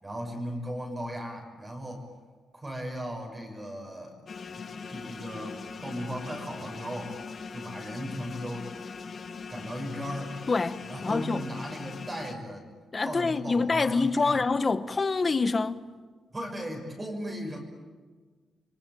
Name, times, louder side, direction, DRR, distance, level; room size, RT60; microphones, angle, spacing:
voice 1, 0.0-2.1 2.5-4.2 4.9-7.1 7.5-8.7 9.5-10.4 10.8-12.7 13.0-14.4 16.3-17.6, equal, 20° right, 6.0 m, -37 dB
sound 1, 4.3-12.3, left 5 dB, 50° left, 1.8 m, -41 dB
voice 2, 10.5-11.4 12.9-15.8, left 4 dB, 30° left, 1.1 m, -26 dB
28.0 x 23.0 x 9.1 m
cardioid pair, 100°, 0 cm